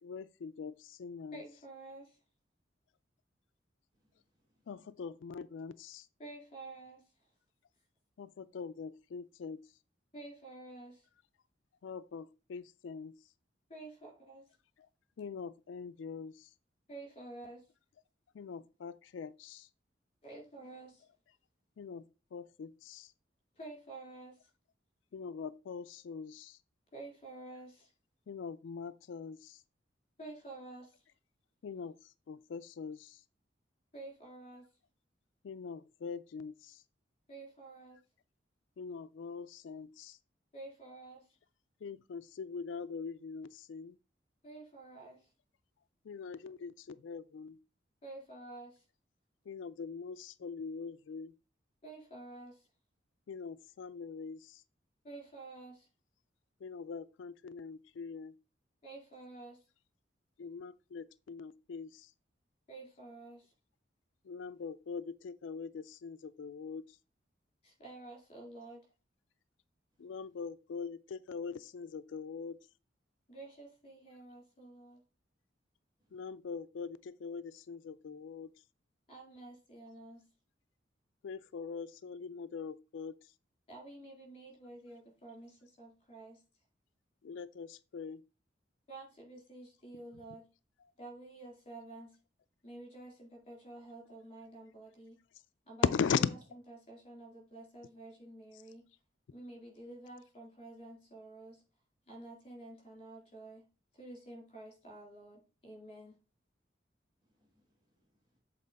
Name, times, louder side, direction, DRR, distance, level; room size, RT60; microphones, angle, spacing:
voice 1, 0.0-1.4 4.7-6.1 8.2-9.7 11.8-13.1 15.2-16.5 18.3-19.7 21.8-23.1 25.1-26.6 28.3-29.6 31.6-33.2 35.4-36.8 38.8-40.2 41.8-44.0 46.0-47.6 49.5-51.3 53.3-54.6 56.6-58.3 60.4-62.1 64.2-67.0 70.0-72.6 76.1-78.5 81.2-83.3 87.2-88.2 90.8-90.9 95.8-96.3 98.5-98.6, left 6 dB, 90° left, 0.4 m, -41 dB
voice 2, 1.3-2.2 6.2-7.0 10.1-11.1 13.7-14.4 16.9-17.6 20.2-21.0 23.5-24.5 26.9-27.9 30.2-31.0 33.9-34.7 37.3-38.0 40.5-41.3 44.4-45.3 48.0-48.8 51.8-52.7 55.0-55.9 58.8-59.6 62.7-63.5 67.6-68.8 73.3-75.0 79.1-80.2 83.7-86.4 88.9-90.5 91.0-92.2 92.6-95.2 95.7-95.9 96.2-96.3 96.8-98.8 99.3-101.6 102.1-103.6 103.9-106.2, right 2 dB, 35° left, 3.4 m, -50 dB
voice 3, 3.9-4.7 70.0-70.1 76.0-76.1 107.2-108.4, equal, 25° right, 3.1 m, -79 dB
7.6 x 4.1 x 4.0 m
head